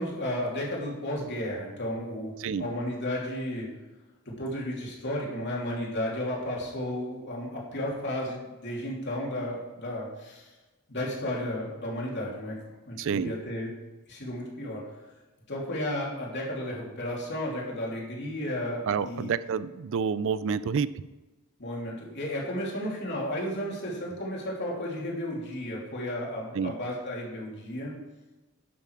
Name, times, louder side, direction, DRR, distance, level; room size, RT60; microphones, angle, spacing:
voice 1, 0.0-2.3 2.6-3.7 4.2-10.5 10.9-12.6 12.9-13.7 14.1-14.8 15.5-19.3 21.6-27.9, left 1 dB, 50° left, -3 dB, 3.0 m, -33 dB
voice 2, 13.0-13.4 18.9-21.0 26.5-26.7, right 6 dB, 60° right, 16 dB, 0.4 m, -29 dB
11.5 x 7.1 x 4.8 m, 1.1 s
head